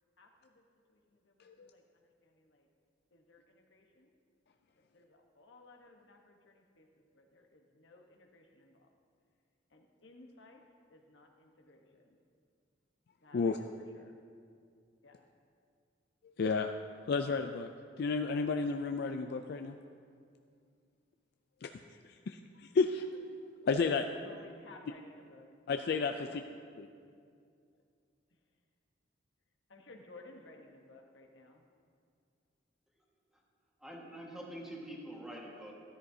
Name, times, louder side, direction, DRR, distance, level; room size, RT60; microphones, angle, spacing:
voice 1, 0.2-0.6 0.9-2.7 3.1-4.2 4.8-8.9 9.7-10.6 10.9-12.2 13.2-14.2 15.0-15.2 24.1-25.4 26.3-26.4 29.7-31.6, left 2 dB, 80° left, 2 dB, 1.1 m, -58 dB
voice 2, 16.4-16.7 17.1-17.7 18.0-19.7 21.6-21.7 22.0-23.1 23.6-24.1 25.7-26.1, left 4 dB, 60° left, 6 dB, 0.4 m, -31 dB
voice 3, 33.8-35.7, right 1 dB, 5° right, -3 dB, 1.5 m, -45 dB
14.0 x 13.0 x 2.7 m, 2.3 s
head